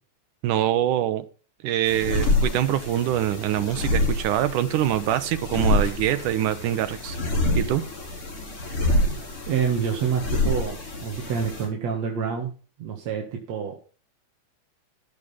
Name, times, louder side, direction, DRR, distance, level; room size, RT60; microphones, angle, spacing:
voice 1, 0.4-1.3 1.6-7.2 7.6-7.8, right 12 dB, 85° right, 11 dB, 2.5 m, -24 dB
sound 1, 1.8-11.7, left 1 dB, 45° left, 4.9 m, -27 dB
voice 2, 9.5-12.5 12.8-13.8, right 7 dB, 60° right, 0 dB, 2.9 m, -27 dB
15.0 x 6.6 x 5.7 m, 0.36 s
omnidirectional pair, 3.6 m